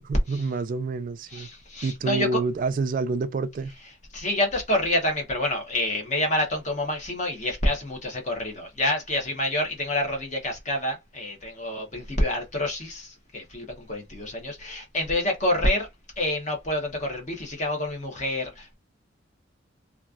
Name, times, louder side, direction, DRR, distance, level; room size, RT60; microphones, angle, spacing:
voice 1, 0.1-1.5 1.8-3.7, right 3 dB, 45° right, 0.3 m, -28 dB
voice 2, 1.3-2.4 4.1-15.9 16.2-18.7, left 1 dB, 40° left, 1.0 m, -27 dB
3.0 x 2.4 x 2.4 m
head